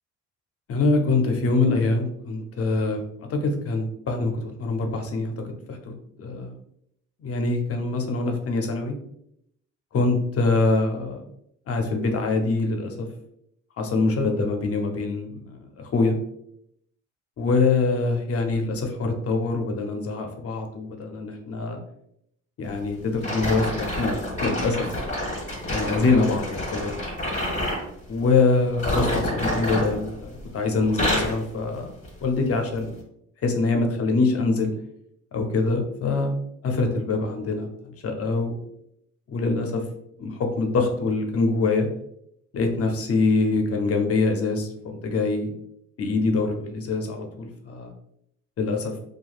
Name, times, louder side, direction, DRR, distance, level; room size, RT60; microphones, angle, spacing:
voice 1, 0.7-5.3 5.7-6.5 7.2-8.9 9.9-11.3 11.7-13.1 13.8-16.2 17.4-21.8 22.6-24.9 25.5-26.9 28.1-31.9 32.2-32.9 33.4-34.7 35.3-36.4 36.6-38.6 39.3-39.8 40.2-41.9 42.5-45.5 46.0-47.9 48.6-48.9, left 3 dB, 50° left, 3 dB, 0.6 m, -24 dB
sound 1, 23.2-27.9 28.7-30.5 30.8-31.4 32.0-32.3 32.9-33.0, left 1 dB, 25° left, 1.1 m, -28 dB
3.1 x 2.3 x 2.4 m, 0.74 s
cardioid pair, 90°, 30 cm